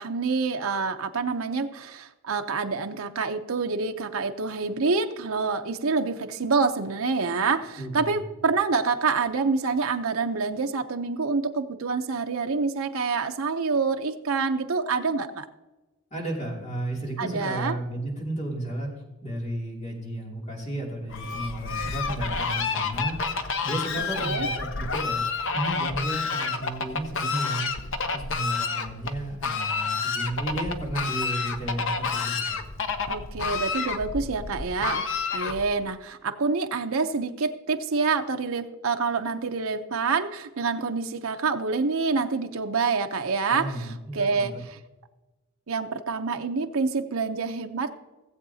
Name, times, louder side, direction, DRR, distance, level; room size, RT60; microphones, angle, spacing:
voice 1, 0.0-15.5 17.2-17.8 24.2-24.5 33.1-35.1 35.3-43.9 44.1-44.8 45.7-48.0, right 4 dB, 65° right, 6 dB, 0.8 m, -27 dB
voice 2, 7.8-8.2 16.1-18.9 19.2-25.2 25.5-27.7 28.1-32.6 43.5-44.5, right 1 dB, 30° left, -2 dB, 2.7 m, -33 dB
Fowl, 21.1-35.8, left 4 dB, 60° left, 0.8 m, -29 dB
17.5 x 7.8 x 2.8 m, 1.1 s
head